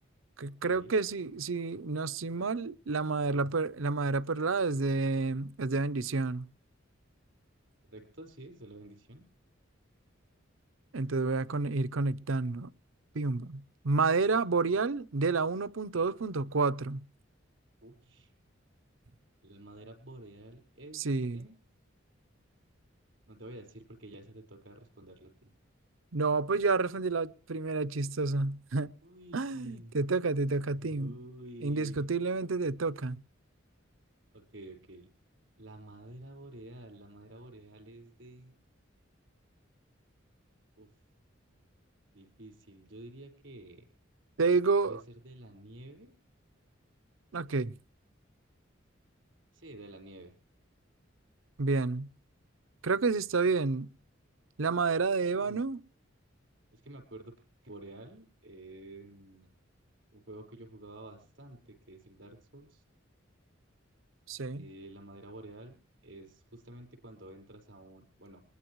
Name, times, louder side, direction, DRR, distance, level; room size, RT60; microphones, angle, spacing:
voice 1, 0.4-6.5 10.9-12.7 13.1-17.0 20.9-21.4 26.1-28.9 29.3-31.1 31.6-33.2 44.4-45.0 47.3-47.7 51.6-52.1 52.8-53.9 54.6-55.8 64.3-64.6, right 4 dB, 85° right, 0.7 m, -29 dB
voice 2, 7.8-9.3 17.8-18.3 19.4-21.1 21.3-21.6 23.3-25.5 29.0-30.0 30.8-32.1 34.3-35.1 35.6-38.5 40.8-40.9 42.1-43.8 44.8-46.2 49.5-50.3 55.3-55.6 56.7-57.3 57.6-59.5 60.1-62.8 64.5-65.8 66.0-68.4, right 1 dB, 65° right, 4.8 m, -50 dB
20.5 x 20.5 x 3.1 m
head